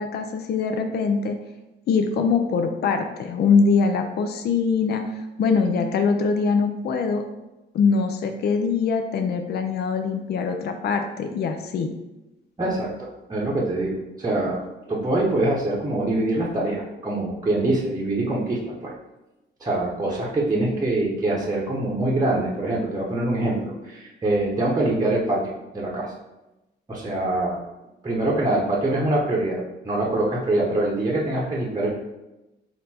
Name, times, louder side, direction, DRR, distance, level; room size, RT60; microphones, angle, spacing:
voice 1, 0.0-1.4 1.9-7.2 7.7-11.9, left 5 dB, 55° left, 5 dB, 0.5 m, -23 dB
voice 2, 12.6-13.9 14.2-14.6 14.9-18.9 19.6-26.1 26.9-27.6 28.0-31.9, right 2 dB, 20° right, -4 dB, 0.9 m, -24 dB
4.3 x 2.6 x 4.1 m, 0.98 s
cardioid pair, 90°, 20 cm